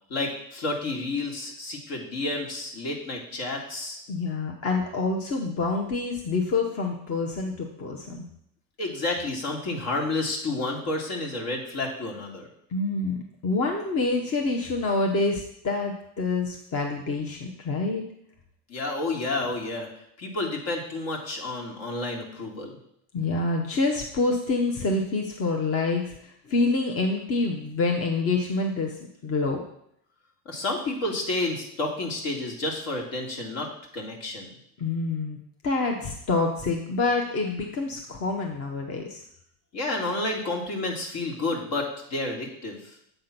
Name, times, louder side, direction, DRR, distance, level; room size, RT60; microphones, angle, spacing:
voice 1, 0.1-4.0 8.8-12.5 18.7-19.9 20.2-22.7 30.5-34.5 39.7-43.0, left 2 dB, 60° left, 0 dB, 2.2 m, -30 dB
voice 2, 4.1-8.2 12.7-13.2 13.4-18.0 23.1-28.9 29.2-29.6 34.8-35.4 35.6-39.2, left 3 dB, 35° left, 2 dB, 1.0 m, -27 dB
7.9 x 3.7 x 5.9 m, 0.72 s
supercardioid pair, 100°, 42 cm